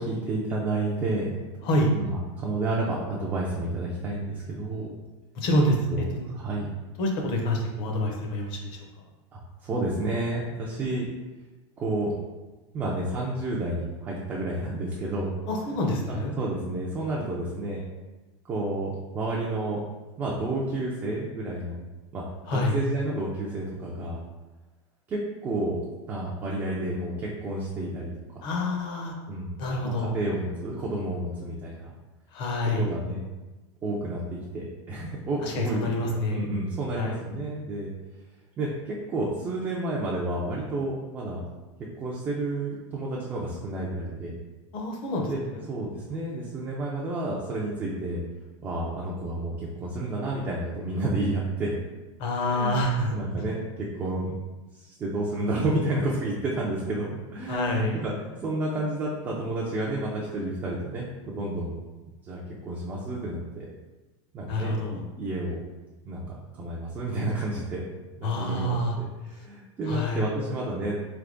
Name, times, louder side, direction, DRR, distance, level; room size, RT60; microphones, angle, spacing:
voice 1, 0.0-1.7 1.9-4.9 5.9-6.0 6.3-6.7 9.3-11.0 11.8-12.1 12.7-15.4 16.1-17.8 18.5-19.8 20.2-21.8 22.1-22.2 22.5-24.2 25.1-25.8 26.1-28.1 29.3-29.6 29.8-31.9 32.8-33.2 33.8-35.9 36.2-37.9 38.6-41.4 42.0-44.4 45.3-45.4 45.7-48.2 48.6-51.8 52.4-54.4 54.8-61.7 62.3-63.7 64.3-65.6 66.1-66.2 66.5-67.8 68.2-69.0 69.3-71.0, right 2 dB, 10° right, -4 dB, 0.3 m, -30 dB
voice 2, 5.3-6.3 7.0-8.9 15.5-16.3 22.5-22.7 28.4-29.2 29.6-30.2 32.3-32.9 35.4-36.5 37.0-37.2 44.7-45.7 52.2-53.2 57.5-58.0 64.5-65.0 68.2-69.0 69.9-70.3, left 1 dB, 30° left, 1 dB, 0.6 m, -27 dB
3.4 x 3.3 x 3.7 m, 1.1 s
supercardioid pair, 175°, 15 cm